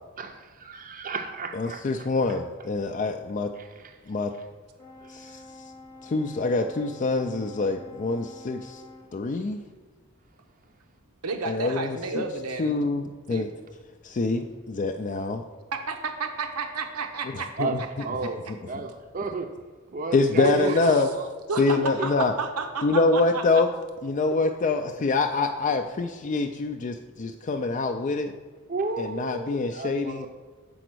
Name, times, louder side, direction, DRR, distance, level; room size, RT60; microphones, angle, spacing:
voice 1, 0.2-2.1 3.6-4.0 5.0-5.3 17.6-17.8 18.0-18.4 18.6-19.6 19.9-21.3 21.6-22.1 28.7-30.3, right 3 dB, 40° right, 6 dB, 0.5 m, -34 dB
voice 2, 1.5-3.5 4.1-4.3 5.1-5.4 6.0-8.8 9.1-9.6 11.5-12.2 12.6-13.5 14.0-15.4 17.6-17.8 18.8-18.9 20.1-21.1 21.6-22.3 22.8-23.7 24.0-28.3 29.0-30.3, left 3 dB, 35° left, 4 dB, 0.4 m, -25 dB
Brass instrument, 4.8-9.2, left 2 dB, 15° left, 0.8 m, -47 dB
voice 3, 11.2-12.8 13.3-13.5 15.7-17.6 20.4-21.0 21.5-23.6, right 4 dB, 85° right, 5 dB, 0.8 m, -31 dB
7.7 x 5.1 x 6.1 m, 1.4 s
head